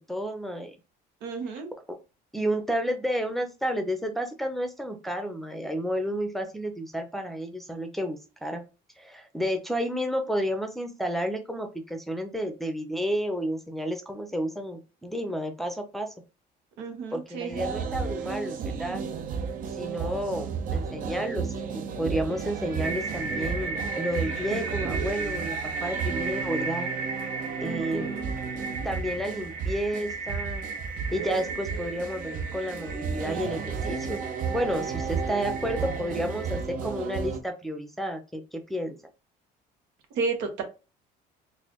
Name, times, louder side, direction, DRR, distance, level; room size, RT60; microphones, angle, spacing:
voice 1, 0.1-0.8 2.3-8.6 9.0-16.1 17.1-19.1 19.8-26.9 27.6-28.1 28.8-30.7 31.1-34.2 34.5-39.0, equal, ahead, 5 dB, 0.6 m, -31 dB
voice 2, 1.2-1.7 16.8-17.7 27.6-28.3 40.1-40.6, right 4 dB, 85° right, 5 dB, 1.2 m, -32 dB
sound 1, 17.5-37.4, right 6 dB, 50° right, 0.6 m, -33 dB
sound 2, 22.3-36.6, right 4 dB, 70° right, 1.2 m, -36 dB
4.1 x 2.6 x 2.9 m, 0.30 s
cardioid pair, 130°, 17 cm